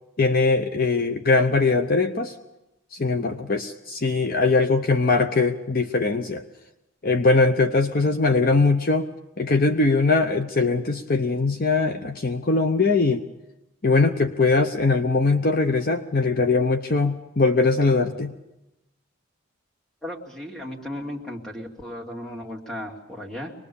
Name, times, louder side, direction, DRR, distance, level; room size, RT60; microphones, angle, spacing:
voice 1, 0.2-2.3 2.9-6.4 7.0-9.1 9.4-13.2 13.8-18.3, left 3 dB, 40° left, 7 dB, 0.8 m, -21 dB
voice 2, 20.0-23.5, left 1 dB, ahead, -1 dB, 2.6 m, -35 dB
24.5 x 20.5 x 7.0 m, 0.94 s
head